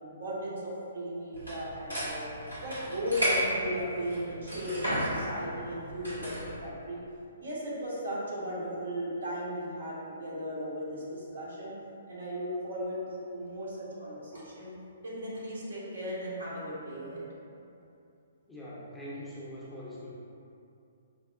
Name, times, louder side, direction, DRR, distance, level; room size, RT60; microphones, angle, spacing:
voice 1, 0.0-2.3 2.6-6.3 6.6-7.0 7.4-11.7 12.1-13.0 13.3-14.7 15.0-17.3, equal, 65° right, -6 dB, 0.9 m, -36 dB
sound 1, 1.3-6.5, equal, 85° right, 1.2 m, -34 dB
voice 2, 18.5-20.1, equal, 5° left, -9 dB, 0.6 m, -42 dB
4.8 x 2.0 x 2.4 m, 2.6 s
figure-of-eight pair, 125°, 0 cm